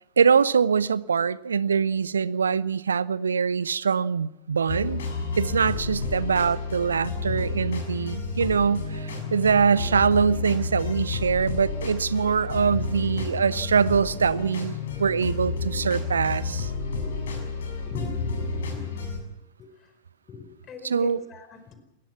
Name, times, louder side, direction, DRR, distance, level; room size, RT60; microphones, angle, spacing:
voice 1, 0.2-5.0 5.4-16.7 20.8-21.2, right 6 dB, 70° right, 0.8 m, -23 dB
sound 1, 4.7-19.2, left 4 dB, 65° left, 6.5 m, -31 dB
voice 2, 17.0-17.5 17.8-18.9 19.6-19.7 20.3-21.8, left 5 dB, 25° left, 4.7 m, -39 dB
28.0 x 21.5 x 5.9 m
figure-of-eight pair, 90°, 0 cm